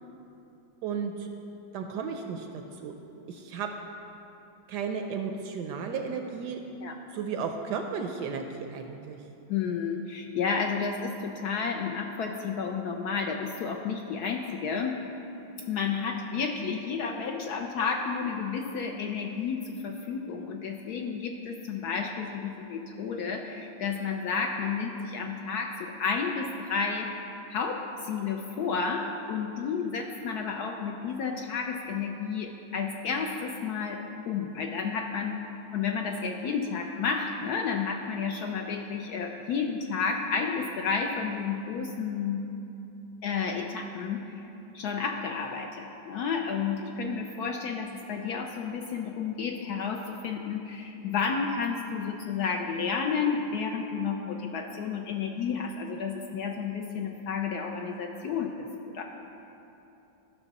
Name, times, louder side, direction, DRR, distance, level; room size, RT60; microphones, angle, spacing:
voice 1, 0.8-1.3 1.7-2.9 3.3-3.7 4.7-6.6 7.1-9.2, right 6 dB, 75° right, 4 dB, 1.0 m, -34 dB
voice 2, 9.5-15.0 15.7-27.1 27.5-34.0 34.3-35.4 35.7-42.4 43.2-44.4 44.7-59.0, left 5 dB, 75° left, 3 dB, 0.9 m, -31 dB
13.5 x 6.0 x 4.0 m, 2.9 s
omnidirectional pair, 2.1 m